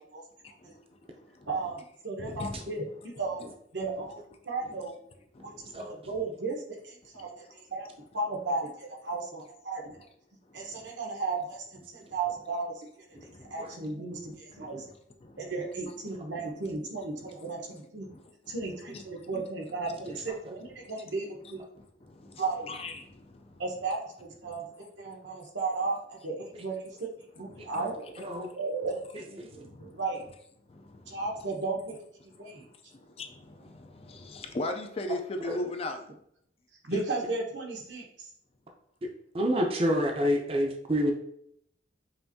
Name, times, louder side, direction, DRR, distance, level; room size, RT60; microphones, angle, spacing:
voice 1, 0.4-1.5 2.2-2.7 4.6-4.8 5.3-6.2 7.1-7.3 9.8-9.9 10.5-10.9 13.2-13.7 14.1-14.9 15.2-15.5 16.1-16.7 17.4-17.6 18.0-18.6 18.9-19.3 19.9-20.1 20.8-20.9 21.4-23.6 24.4-24.6 25.0-25.4 27.5-27.9 28.1-28.5 29.5-30.0 30.7-31.5 32.3-36.1 36.9-37.0, left 2 dB, 30° left, 5 dB, 0.4 m, -41 dB
voice 2, 1.5-3.5 3.7-4.2 4.4-4.9 5.4-7.9 8.1-10.0 10.5-12.9 13.5-14.8 15.4-18.0 18.5-21.6 22.4-22.7 23.6-27.1 27.4-30.2 31.1-31.9 32.4-32.7 36.9-38.0, right 3 dB, 80° right, -1 dB, 1.1 m, -35 dB
voice 3, 28.2-28.5 29.4-29.5 35.4-35.6 39.3-41.1, equal, 30° right, 2 dB, 0.6 m, -27 dB
5.6 x 2.6 x 2.7 m, 0.71 s
head